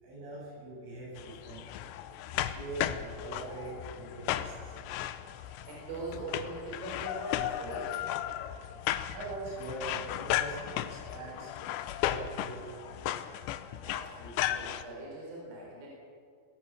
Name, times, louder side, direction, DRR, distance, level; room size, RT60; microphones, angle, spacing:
voice 1, 0.0-1.9 2.3-4.8 9.1-11.5 12.0-13.0, right 2 dB, 70° right, -4 dB, 9.8 m, -42 dB
sound 1, 1.2-14.8, left 12 dB, 80° left, 2.6 m, -35 dB
voice 2, 5.3-8.0 13.8-15.9, right 2 dB, 50° right, -3 dB, 5.8 m, -42 dB
22.0 x 16.5 x 7.1 m, 2.2 s
omnidirectional pair, 5.8 m